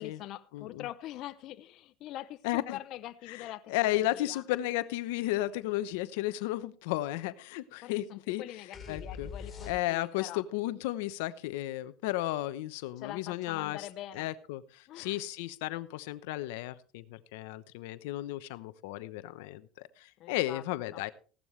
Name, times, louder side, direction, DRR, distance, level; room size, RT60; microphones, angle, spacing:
voice 1, 0.0-4.4 7.8-10.4 13.0-14.3 14.9-15.2 20.2-20.6 20.9-21.0, left 13 dB, 60° left, 10 dB, 0.7 m, -44 dB
voice 2, 0.5-0.9 2.4-2.8 3.3-8.4 8.9-9.3 9.6-13.9 14.1-21.1, left 16 dB, 85° left, 13 dB, 0.9 m, -34 dB
sound 1, 8.7-10.3, left 5 dB, 25° left, 4.2 m, -43 dB
16.5 x 12.5 x 3.3 m, 0.39 s
supercardioid pair, 115°, 0 cm